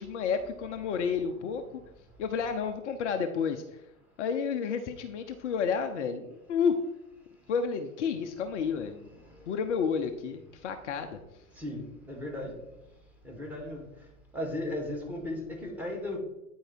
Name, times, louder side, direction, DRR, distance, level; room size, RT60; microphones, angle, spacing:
voice 1, 0.0-1.6 2.2-3.6 4.2-6.8 7.5-9.1 9.5-11.2, left 6 dB, 55° left, 7 dB, 0.7 m, -30 dB
voice 2, 11.6-12.6 13.2-13.9 14.3-16.2, left 1 dB, 5° right, 1 dB, 2.0 m, -36 dB
9.0 x 4.7 x 4.5 m, 0.95 s
figure-of-eight pair, 95°, 43 cm